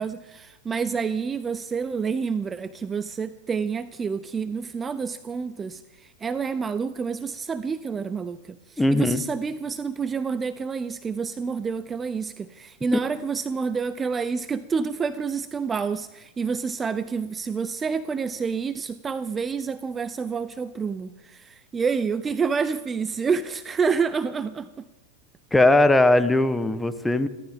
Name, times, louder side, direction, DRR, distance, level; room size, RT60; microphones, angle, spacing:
voice 1, 0.0-24.7, right 5 dB, 20° right, 13 dB, 0.6 m, -28 dB
voice 2, 8.8-9.2 25.5-27.3, left 2 dB, 5° left, 11 dB, 1.1 m, -19 dB
29.5 x 12.5 x 3.7 m, 1.1 s
hypercardioid pair, 115°, 0 cm